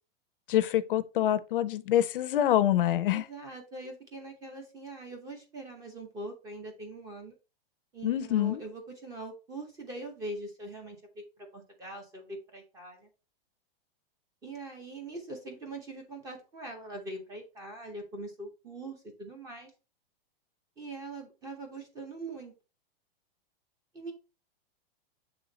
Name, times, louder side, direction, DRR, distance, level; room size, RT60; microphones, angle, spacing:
voice 1, 0.5-3.3 8.0-8.6, left 12 dB, 60° left, 0.6 m, -26 dB
voice 2, 3.1-7.3 7.9-11.2 11.5-13.1 14.4-19.7 20.8-22.5 23.9-24.1, right 2 dB, 10° right, 0.7 m, -42 dB
7.0 x 3.6 x 3.9 m
supercardioid pair, 175°, 30 cm